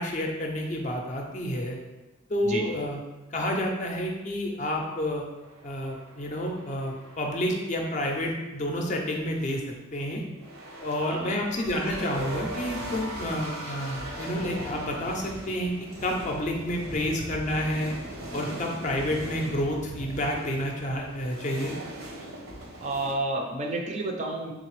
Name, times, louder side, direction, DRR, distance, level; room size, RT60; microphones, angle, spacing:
voice 1, 0.0-1.8 2.3-3.0 3.3-5.2 5.6-10.2 10.8-18.0 18.3-21.7, left 1 dB, 35° left, 1 dB, 0.5 m, -29 dB
sound 1, 5.4-7.7 10.3-23.1, right 1 dB, 70° right, 0.8 m, -39 dB
voice 2, 11.0-11.3 22.8-24.5, right 2 dB, 35° right, 1 dB, 0.4 m, -30 dB
3.8 x 3.2 x 3.1 m, 1.1 s
head